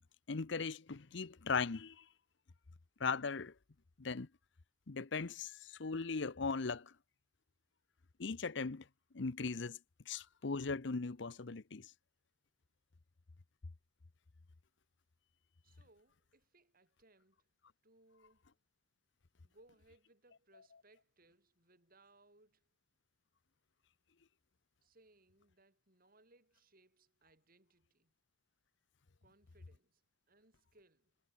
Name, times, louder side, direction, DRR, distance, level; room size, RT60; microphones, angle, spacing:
voice 1, 0.3-2.0 3.0-3.5 4.0-4.3 4.9-6.9 8.2-8.8 9.1-9.8 10.1-11.9, left 4 dB, 65° left, 0.8 m, -38 dB
voice 2, 15.6-17.5 17.8-18.5 19.4-22.7 24.8-28.1 29.2-30.0 30.3-31.2, right 2 dB, 50° right, 7.2 m, -68 dB
head